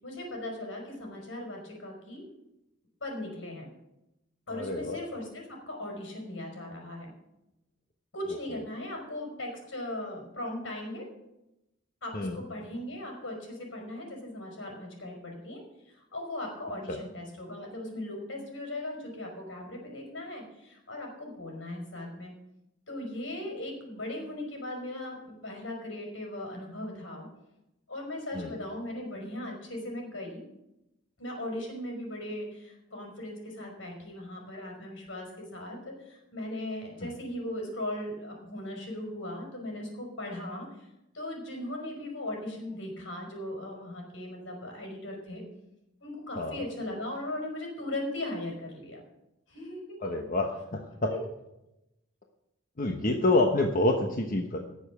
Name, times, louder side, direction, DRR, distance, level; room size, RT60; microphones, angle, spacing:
voice 1, 0.0-2.2 3.0-3.7 4.5-7.1 8.1-11.1 12.0-15.6 15.9-22.3 22.9-27.3 27.9-30.4 31.2-40.7 41.1-45.4 46.0-49.0 49.5-50.2 51.1-51.2, left 1 dB, 80° left, 1 dB, 5.3 m, -38 dB
voice 2, 4.5-5.0 12.1-12.4 16.9-17.0 28.3-28.5 37.0-37.1 46.4-46.6 50.0-51.1 52.8-54.7, left 2 dB, 45° left, 2 dB, 1.2 m, -27 dB
18.5 x 7.2 x 6.1 m, 0.90 s
head